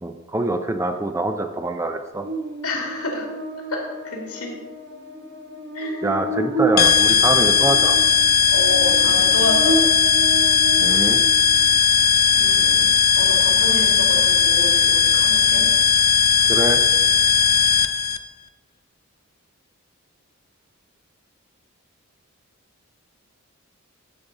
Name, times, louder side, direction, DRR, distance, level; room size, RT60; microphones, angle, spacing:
voice 1, 0.0-2.3 6.0-8.0 10.8-11.2 16.5-16.8, right 2 dB, 15° right, 6 dB, 0.5 m, -24 dB
Buzz, 2.2-11.7, right 2 dB, 50° right, 1.0 m, -30 dB
voice 2, 2.6-3.3 3.7-4.6 5.7-6.1 8.5-9.9 12.4-12.9 13.2-15.7, left 1 dB, 85° left, 0 dB, 2.2 m, -29 dB
sound 1, 6.8-18.2, left 7 dB, 40° left, 0.4 m, -17 dB
14.0 x 5.2 x 3.9 m, 1.1 s
head